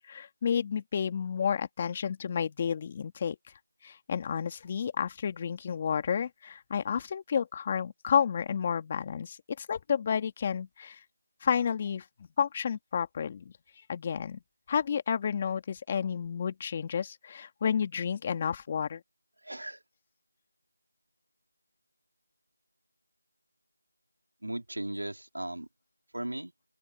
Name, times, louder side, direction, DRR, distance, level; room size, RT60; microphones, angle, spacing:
voice 1, 0.0-3.4 3.8-11.0 11.4-12.1 12.4-13.4 13.9-14.4 14.7-19.0, left 7 dB, 20° left, 2.0 m, -31 dB
voice 2, 19.4-19.8 24.4-25.7 26.1-26.5, right 1 dB, 80° right, 3.3 m, -36 dB
open air
figure-of-eight pair, 170°, 0 cm